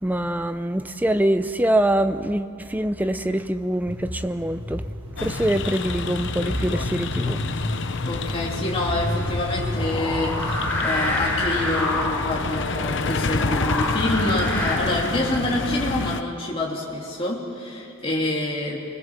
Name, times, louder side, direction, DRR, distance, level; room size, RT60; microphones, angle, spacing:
voice 1, 0.0-4.8 5.2-7.4, right 1 dB, 10° right, 10 dB, 0.6 m, -24 dB
sound 1, 3.9-10.7, left 1 dB, 25° right, 2.1 m, -32 dB
sound 2, 5.2-16.2, left 3 dB, 55° left, 0.8 m, -28 dB
voice 2, 8.0-18.8, left 1 dB, 25° left, -3 dB, 3.1 m, -27 dB
sound 3, 9.7-14.7, left 1 dB, 10° left, 3.5 m, -28 dB
26.0 x 21.5 x 7.4 m, 2.5 s
head